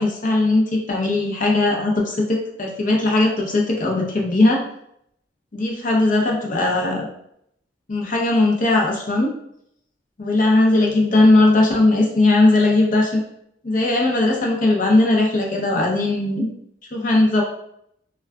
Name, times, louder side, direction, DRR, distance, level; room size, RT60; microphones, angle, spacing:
voice 1, 0.0-4.6 5.5-7.1 7.9-9.3 10.2-13.2 13.6-16.5 16.9-17.4, left 2 dB, 45° left, -1 dB, 0.6 m, -18 dB
3.6 x 2.2 x 2.3 m, 0.73 s
head